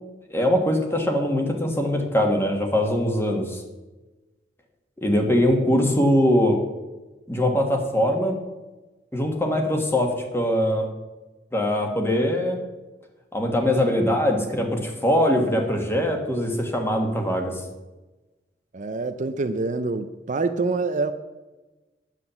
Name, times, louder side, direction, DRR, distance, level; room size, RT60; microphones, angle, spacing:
voice 1, 0.3-3.6 5.0-6.6 7.3-8.4 9.1-10.9 11.5-12.6 13.3-17.5, left 1 dB, 15° left, 3 dB, 1.6 m, -22 dB
voice 2, 18.7-21.1, right 3 dB, 45° right, 9 dB, 0.5 m, -26 dB
9.8 x 7.4 x 7.0 m, 1.2 s
head